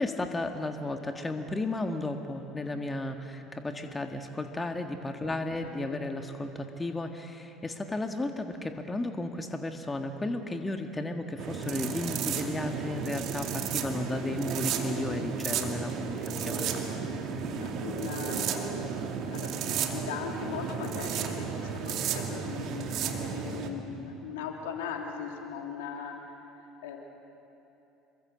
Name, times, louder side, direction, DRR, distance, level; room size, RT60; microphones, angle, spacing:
voice 1, 0.0-16.7, left 2 dB, 20° left, 5 dB, 1.7 m, -34 dB
voice 2, 5.2-6.0 13.9-14.2 16.9-18.8 19.3-26.1 26.8-27.0, left 6 dB, 75° left, 2 dB, 3.0 m, -40 dB
sound 1, 11.4-23.7, right 7 dB, 55° right, 2.3 m, -33 dB
27.5 x 23.5 x 7.6 m, 2.9 s
hypercardioid pair, 65°, 0 cm